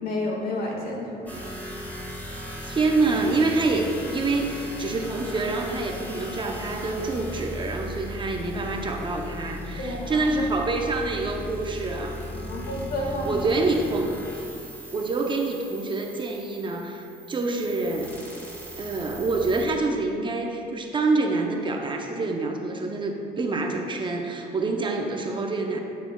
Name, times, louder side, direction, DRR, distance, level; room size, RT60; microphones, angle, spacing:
voice 1, 0.0-1.3 9.8-10.3 12.3-13.4, left 1 dB, 65° left, -1 dB, 1.7 m, -30 dB
sound 1, 1.3-19.7, equal, 10° left, 1.7 m, -37 dB
voice 2, 2.6-12.2 13.2-14.1 14.9-18.1 18.8-25.8, right 3 dB, 30° right, 2 dB, 0.7 m, -26 dB
10.5 x 6.6 x 2.3 m, 2.7 s
cardioid pair, 110°, 17 cm